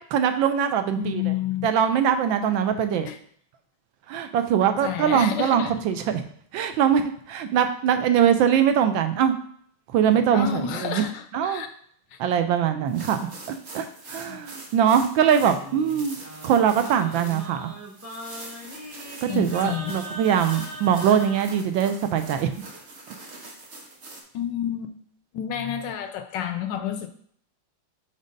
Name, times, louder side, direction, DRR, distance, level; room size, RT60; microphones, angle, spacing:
voice 1, 0.1-1.3 1.6-3.1 4.1-6.2 6.5-9.4 9.9-11.0 11.3-11.6 12.2-13.2 13.7-17.7 19.2-22.5, right 8 dB, 75° right, 8 dB, 1.3 m, -22 dB
voice 2, 0.9-1.7 3.0-3.2 4.7-5.7 10.3-11.7 12.1-12.2 14.2-14.4 19.3-20.0 24.3-25.0 25.3-27.1, left 9 dB, 75° left, 9 dB, 1.1 m, -30 dB
sound 1, 12.9-24.2, right 2 dB, 45° right, 1.1 m, -43 dB
Singing, 15.4-21.4, equal, 10° right, 0.8 m, -40 dB
5.1 x 4.1 x 5.1 m, 0.62 s
omnidirectional pair, 2.2 m